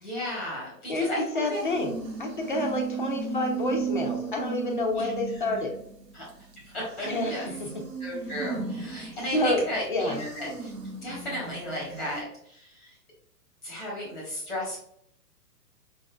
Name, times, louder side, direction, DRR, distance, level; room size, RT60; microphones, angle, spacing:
voice 1, 0.0-1.2 1.5-1.6 5.0-5.1 6.1-6.2 6.7-7.4 8.0-10.7 11.0-12.9 13.6-14.8, left 1 dB, ahead, -4 dB, 0.8 m, -34 dB
voice 2, 1.3-5.7 7.1-7.8 9.3-9.6 9.9-10.2, left 2 dB, 35° left, 2 dB, 0.5 m, -28 dB
sound 1, 1.5-6.6 6.9-12.2, right 5 dB, 80° right, 1.0 m, -35 dB
4.5 x 2.6 x 2.2 m, 0.71 s
figure-of-eight pair, 120°, 49 cm